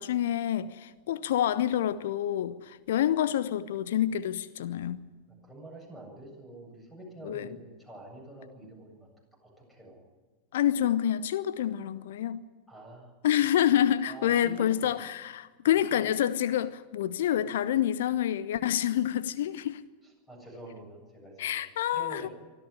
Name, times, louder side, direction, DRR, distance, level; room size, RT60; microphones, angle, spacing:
voice 1, 0.0-5.1 7.2-7.5 10.5-12.4 13.2-19.8 21.4-22.3, left 11 dB, 55° left, 0.8 m, -27 dB
voice 2, 5.3-9.1 9.7-10.0 12.7-13.1 14.1-14.9 15.7-16.1 20.0-21.6 21.9-22.3, right 1 dB, 5° left, 7.9 m, -47 dB
24.5 x 14.0 x 9.9 m
figure-of-eight pair, 90°, 0 cm